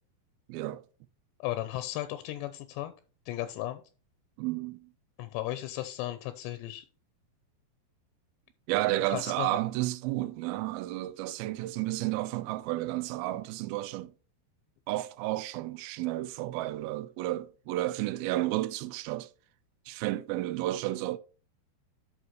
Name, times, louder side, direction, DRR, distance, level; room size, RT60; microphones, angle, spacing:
voice 1, 0.5-0.8 4.4-4.9 8.7-14.1 14.9-19.3 19.9-21.2, right 16 dB, 80° right, 2.2 m, -32 dB
voice 2, 1.4-2.9 3.3-3.8 5.2-6.9 9.1-9.6, left 14 dB, 85° left, 2.9 m, -35 dB
11.5 x 5.7 x 3.1 m
omnidirectional pair, 4.9 m